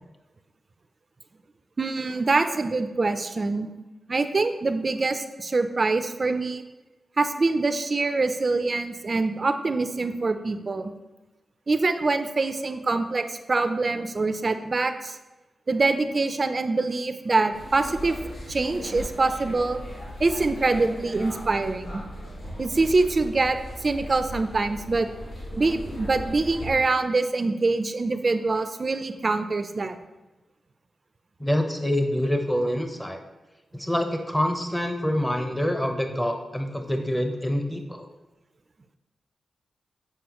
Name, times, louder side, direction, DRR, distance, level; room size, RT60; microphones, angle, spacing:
voice 1, 1.8-3.7 4.1-6.6 7.2-10.9 11.7-15.2 15.7-18.2 18.5-19.8 20.2-22.0 22.6-25.1 25.6-30.0, right 3 dB, 50° right, 9 dB, 0.5 m, -24 dB
sound 1, 17.5-26.7, equal, 80° left, 1.9 m, -38 dB
voice 2, 31.4-33.2 33.7-38.1, equal, 10° left, 5 dB, 0.9 m, -26 dB
7.7 x 4.7 x 3.0 m, 1.1 s
supercardioid pair, 40°, 0 cm